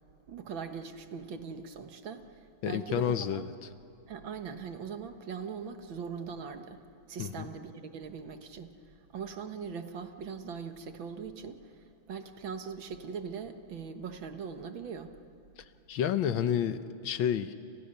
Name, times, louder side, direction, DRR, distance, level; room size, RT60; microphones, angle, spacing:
voice 1, 0.3-2.3 2.7-3.5 4.1-6.8 7.1-8.7 9.1-11.6 12.1-15.1, right 6 dB, 65° right, 8 dB, 2.1 m, -40 dB
voice 2, 2.6-3.7 7.2-7.5 15.9-17.5, left 9 dB, 70° left, 12 dB, 1.6 m, -30 dB
29.5 x 29.0 x 6.7 m, 2.6 s
omnidirectional pair, 2.3 m